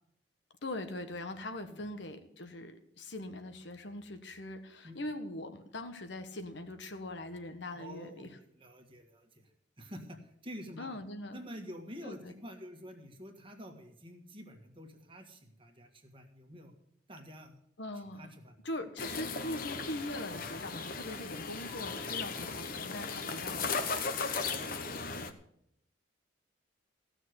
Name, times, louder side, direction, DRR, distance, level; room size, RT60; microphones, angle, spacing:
voice 1, 0.6-8.4 10.8-11.4 12.0-12.3 17.8-18.3 18.6-23.6, left 1 dB, 65° left, 8 dB, 1.3 m, -41 dB
voice 2, 7.7-9.5 9.8-11.0 11.3-16.7 17.1-17.6 18.2-18.6 22.3-22.5 24.2-25.0, equal, 25° right, 3 dB, 1.7 m, -48 dB
sound 1, 19.0-25.3, left 4 dB, 45° left, 1.0 m, -37 dB
15.5 x 6.4 x 8.0 m, 0.73 s
head